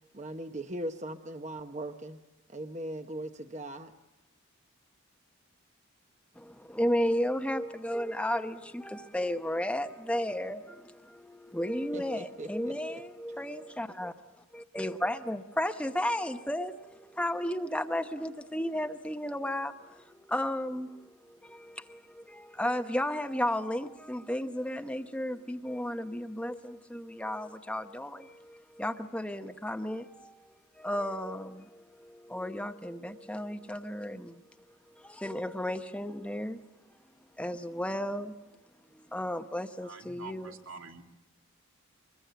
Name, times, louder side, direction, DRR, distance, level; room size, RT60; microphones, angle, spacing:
voice 1, 0.1-2.2 2.5-3.9 11.9-13.0, right 1 dB, 35° right, 1.0 m, -39 dB
voice 2, 6.4-14.1 14.5-34.4 35.0-36.6 37.4-38.3 38.9-40.6, left 1 dB, 5° left, 0.8 m, -34 dB
voice 3, 39.8-41.0, right 4 dB, 75° right, 2.4 m, -46 dB
24.5 x 22.0 x 9.1 m
head